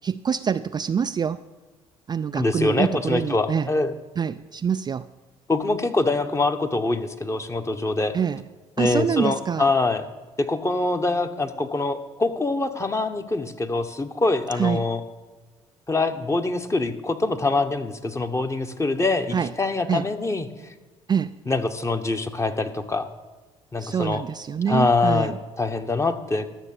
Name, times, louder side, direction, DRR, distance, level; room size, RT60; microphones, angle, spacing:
voice 1, 0.0-1.4 2.1-3.7 4.2-5.1 8.1-8.4 8.8-9.7 14.6-14.9 19.3-19.5 19.9-20.0 21.1-21.4 23.8-25.4, right 7 dB, 30° right, 10 dB, 0.4 m, -25 dB
voice 2, 2.3-3.9 5.5-8.2 8.8-10.1 10.4-15.0 15.9-20.5 21.5-23.1 23.7-24.2 24.7-26.5, left 3 dB, 20° left, 7 dB, 1.1 m, -24 dB
12.0 x 6.8 x 6.7 m, 1.3 s
hypercardioid pair, 50°, 15 cm